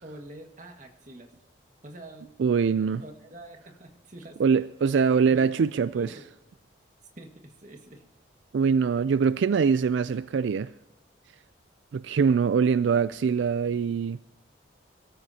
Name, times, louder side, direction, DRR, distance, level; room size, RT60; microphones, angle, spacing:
voice 1, 0.0-1.3 1.8-2.3 3.0-4.4 5.3-6.3 7.2-8.0, right 1 dB, 40° right, 1.8 m, -46 dB
voice 2, 2.4-3.0 4.4-6.1 8.5-10.7 11.9-14.2, right 6 dB, 75° right, 0.3 m, -23 dB
23.0 x 14.0 x 2.8 m
head